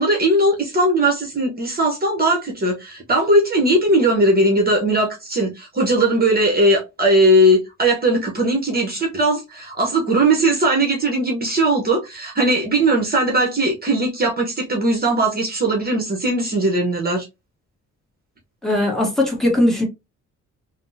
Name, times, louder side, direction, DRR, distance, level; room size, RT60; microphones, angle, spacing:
voice 1, 0.0-17.3, right 1 dB, 30° right, 0.9 m, -19 dB
voice 2, 18.6-19.9, left 1 dB, ahead, 1.2 m, -19 dB
3.4 x 2.0 x 2.6 m
cardioid pair, 90°, 30 cm